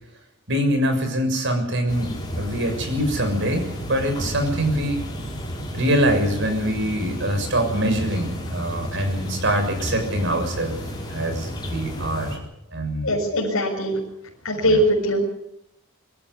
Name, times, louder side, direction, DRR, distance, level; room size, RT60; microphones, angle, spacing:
voice 1, 0.5-5.0 5.7-10.8 11.1-12.4 12.7-13.1 14.6-14.8, equal, 60° right, 6 dB, 6.8 m, -24 dB
sound 1, 1.9-12.4, equal, 20° left, 5.4 m, -32 dB
voice 2, 13.0-13.9 14.4-15.2, equal, 75° left, -1 dB, 6.5 m, -21 dB
25.5 x 14.0 x 9.8 m, 0.85 s
head